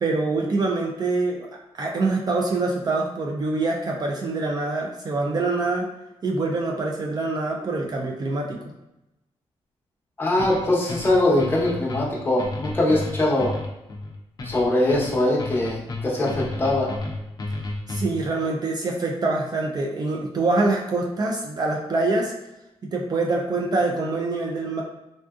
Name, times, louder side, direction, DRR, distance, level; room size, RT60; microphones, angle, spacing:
voice 1, 0.0-1.5 1.8-5.9 6.2-8.6 17.9-22.3 22.9-24.8, right 3 dB, 40° right, 0 dB, 0.4 m, -25 dB
voice 2, 10.2-13.5 14.4-16.9, left 1 dB, 20° left, -5 dB, 0.9 m, -22 dB
sound 1, 10.4-18.3, left 2 dB, 35° left, 0.5 m, -32 dB
3.5 x 2.5 x 2.4 m, 0.92 s
cardioid pair, 110°, 11 cm